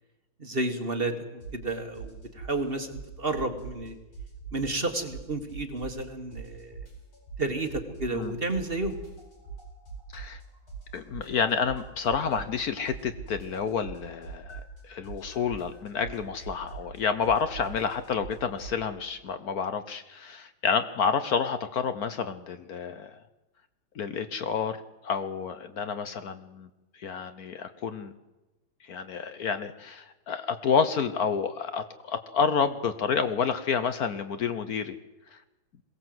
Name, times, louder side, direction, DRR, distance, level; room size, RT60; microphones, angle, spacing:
voice 1, 0.4-1.1 1.5-3.9 4.5-6.9 7.4-9.0, right 2 dB, 30° right, 7 dB, 1.5 m, -31 dB
sound 1, 1.4-1.7 2.0-3.9 4.1-6.1 6.3-8.2 8.5-12.6 12.9-18.8, right 5 dB, 90° left, 5.8 m, -42 dB
voice 2, 10.9-23.2 23.9-24.8 25.0-26.7 26.9-28.1 28.8-35.0 35.3-35.4, left 6 dB, 60° left, 11 dB, 1.1 m, -29 dB
22.0 x 17.0 x 7.8 m, 1.0 s
omnidirectional pair, 2.3 m